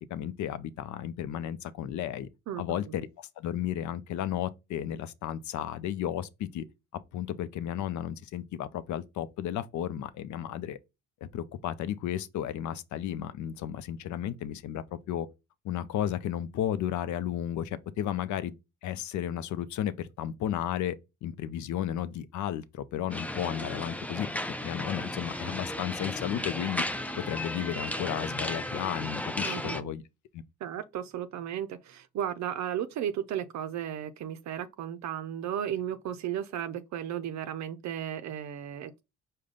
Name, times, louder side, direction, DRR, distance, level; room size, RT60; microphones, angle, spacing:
voice 1, 0.1-2.3 2.6-6.7 6.9-10.8 11.3-15.3 15.6-18.5 18.8-24.3 24.6-26.9 27.2-30.0 30.3-30.4, left 10 dB, 70° left, 0.5 m, -33 dB
voice 2, 2.5-2.9 29.4-29.9 30.6-39.0, right 10 dB, 65° right, 0.5 m, -35 dB
sound 1, 23.1-29.8, left 1 dB, 5° left, 0.3 m, -35 dB
5.0 x 2.2 x 3.7 m
cardioid pair, 90°, 30 cm